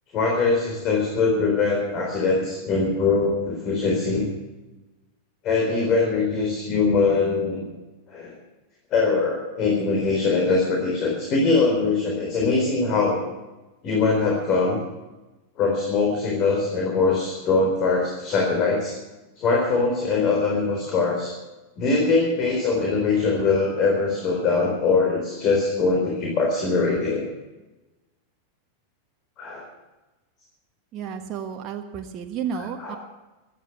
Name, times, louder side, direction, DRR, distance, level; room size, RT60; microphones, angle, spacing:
voice 1, 0.1-4.2 5.4-7.6 8.1-8.3 8.9-13.2 13.8-14.8 15.6-19.0 19.4-21.3 21.8-27.2 29.4-29.6 32.8-32.9, left 4 dB, 35° left, -1 dB, 4.2 m, -22 dB
voice 2, 30.9-33.0, right 7 dB, 35° right, 3 dB, 1.4 m, -32 dB
17.5 x 12.5 x 6.1 m, 1.1 s
figure-of-eight pair, 90°, 0 cm